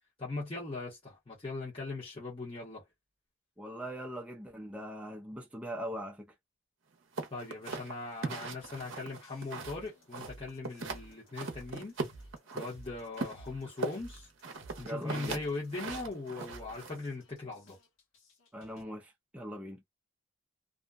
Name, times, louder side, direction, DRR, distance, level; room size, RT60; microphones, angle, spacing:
voice 1, 0.2-2.8 7.3-11.9 12.5-14.3 14.8-17.8, left 3 dB, 25° left, 0.9 m, -40 dB
voice 2, 3.6-6.3 14.8-15.4 18.5-19.8, equal, 5° right, 0.4 m, -41 dB
sound 1, 7.2-9.8 10.1-11.0 11.4-12.7 13.2-17.0, right 3 dB, 65° right, 0.7 m, -39 dB
sound 2, 8.6-18.8, right 1 dB, 75° left, 1.0 m, -54 dB
2.5 x 2.1 x 2.3 m
head